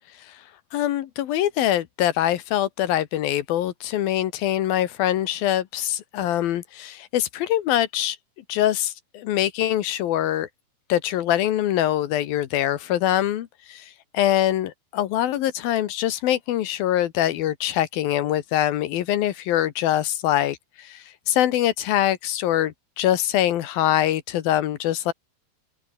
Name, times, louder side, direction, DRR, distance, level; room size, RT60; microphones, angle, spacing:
voice 1, 0.7-8.2 8.5-10.5 10.9-25.1, left 12 dB, 70° left, 2.9 m, -24 dB
open air
omnidirectional pair, 4.5 m